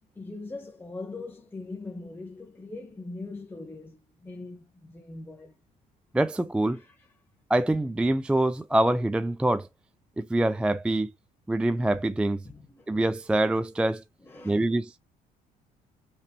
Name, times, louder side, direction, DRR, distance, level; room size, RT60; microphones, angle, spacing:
voice 1, 0.1-5.6 6.7-7.1 12.4-12.9 14.2-14.8, left 3 dB, 10° left, 1.0 m, -41 dB
voice 2, 6.1-6.8 7.5-9.7 10.2-11.1 11.5-12.4 12.9-14.0 14.5-14.9, right 1 dB, 5° right, 0.3 m, -25 dB
5.7 x 3.1 x 2.8 m
cardioid pair, 110°, 17 cm